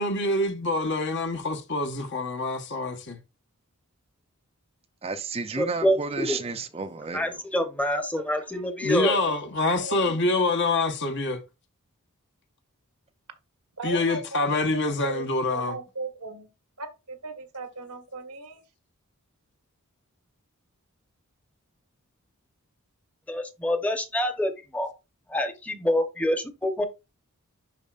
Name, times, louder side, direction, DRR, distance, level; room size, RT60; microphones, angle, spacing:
voice 1, 0.0-3.2 8.8-11.4 13.8-15.8, left 2 dB, 55° left, 1.2 m, -26 dB
voice 2, 5.0-7.3, right 4 dB, 25° right, 0.6 m, -32 dB
voice 3, 5.6-6.4 7.1-9.2 23.3-24.9 25.3-26.9, equal, 5° left, 0.9 m, -26 dB
voice 4, 8.0-9.4 9.8-10.2 13.8-14.6 14.8-16.5 16.8-18.6, right 2 dB, 90° right, 1.4 m, -38 dB
11.0 x 4.3 x 2.5 m
head